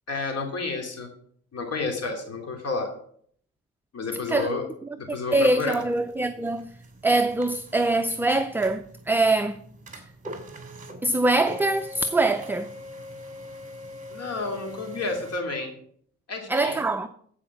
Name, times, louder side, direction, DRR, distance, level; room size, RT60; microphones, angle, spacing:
voice 1, 0.1-1.1 1.5-2.9 3.9-4.7 5.0-5.9 14.1-15.7 16.3-16.9, left 3 dB, 55° left, 2.8 m, -30 dB
voice 2, 5.3-6.7 7.0-9.6 11.0-12.7 16.5-17.1, right 2 dB, 5° right, 0.5 m, -23 dB
sound 1, 5.3-15.4, equal, 25° right, 2.6 m, -42 dB
14.0 x 4.9 x 5.9 m
cardioid pair, 90°, 30 cm